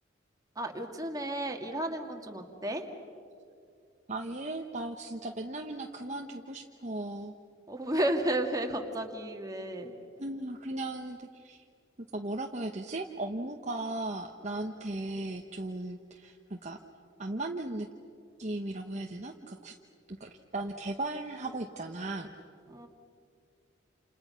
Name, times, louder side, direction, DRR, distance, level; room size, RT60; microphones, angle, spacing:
voice 1, 0.6-2.9 7.7-9.9 22.7-22.9, right 1 dB, 20° right, 3 dB, 2.1 m, -32 dB
voice 2, 4.1-7.3 10.2-11.6 12.1-16.8 17.2-17.9 18.4-19.7 20.1-22.3, right 2 dB, 35° right, 2 dB, 1.1 m, -37 dB
29.0 x 29.0 x 5.8 m, 2.3 s
head